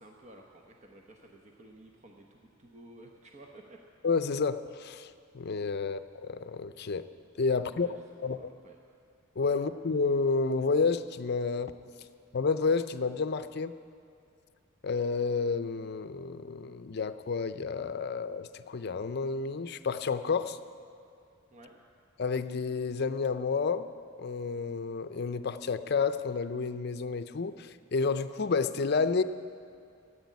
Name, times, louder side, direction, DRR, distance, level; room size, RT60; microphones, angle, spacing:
voice 1, 0.0-3.8 7.7-7.9 8.2-8.8 9.5-9.6 12.0-12.1 21.5-21.8, right 1 dB, 35° right, 1 dB, 1.0 m, -53 dB
voice 2, 4.0-7.1 7.4-7.9 8.2-8.4 9.4-11.7 12.3-13.7 14.8-20.6 22.2-23.9 24.2-29.2, left 4 dB, 50° left, 11 dB, 0.5 m, -30 dB
14.5 x 8.7 x 9.4 m, 2.4 s
head